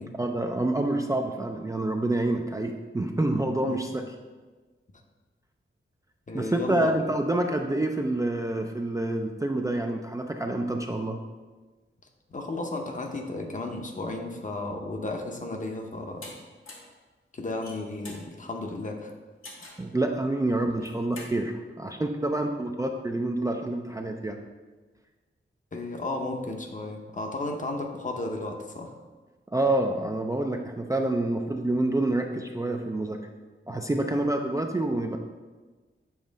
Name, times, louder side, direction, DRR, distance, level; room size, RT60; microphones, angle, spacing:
voice 1, 0.2-4.0 6.3-11.2 19.8-24.4 29.5-33.2 33.7-35.2, right 2 dB, 15° right, 3 dB, 0.3 m, -27 dB
voice 2, 6.3-6.9 12.3-16.3 17.3-19.1 25.7-28.9 34.1-34.2, left 2 dB, 40° left, 3 dB, 0.7 m, -34 dB
sound 1, 16.2-16.3 16.7-16.9 17.5-18.3 19.4-19.9 20.7-21.3, left 2 dB, 85° left, 1.2 m, -44 dB
7.2 x 3.1 x 5.1 m, 1.3 s
wide cardioid pair, 125°, 21 cm